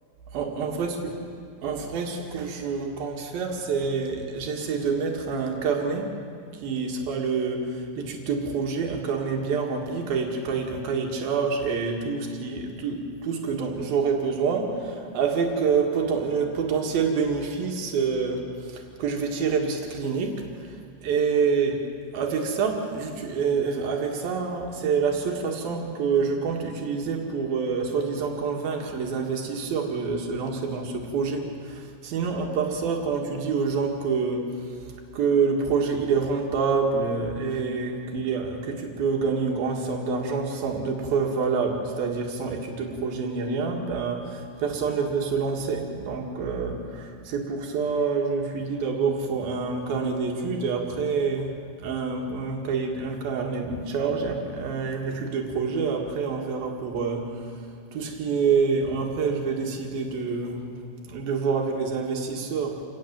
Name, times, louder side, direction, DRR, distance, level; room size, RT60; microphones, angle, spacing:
voice 1, 0.3-1.0 1.6-6.2 6.5-21.8 22.1-34.8 35.1-57.5 57.9-60.7 61.0-62.8, right 5 dB, 85° right, 2 dB, 3.8 m, -27 dB
27.0 x 19.5 x 7.6 m, 2.3 s
omnidirectional pair, 4.1 m